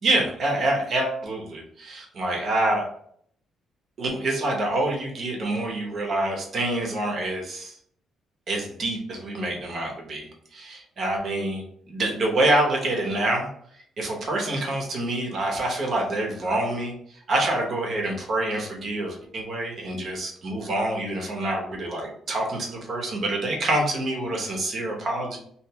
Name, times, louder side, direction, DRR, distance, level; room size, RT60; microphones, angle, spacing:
voice 1, 0.0-2.8 4.0-7.7 8.5-13.5 14.0-16.9 17.3-25.4, right 1 dB, 40° right, 0 dB, 0.8 m, -26 dB
2.9 x 2.5 x 3.4 m, 0.64 s
cardioid pair, 170°, 0 cm